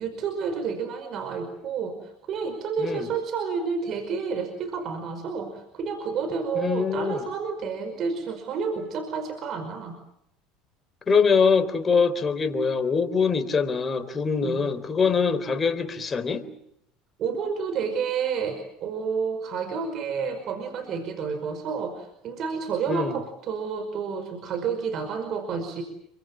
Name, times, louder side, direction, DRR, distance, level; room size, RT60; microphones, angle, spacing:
voice 1, 0.0-10.0 14.3-14.6 17.2-25.8, right 5 dB, 50° right, 7 dB, 5.2 m, -30 dB
voice 2, 6.6-7.2 11.1-16.4 22.9-23.1, left 5 dB, 30° left, 11 dB, 3.7 m, -23 dB
29.0 x 24.0 x 7.4 m, 0.76 s
hypercardioid pair, 85°, 0 cm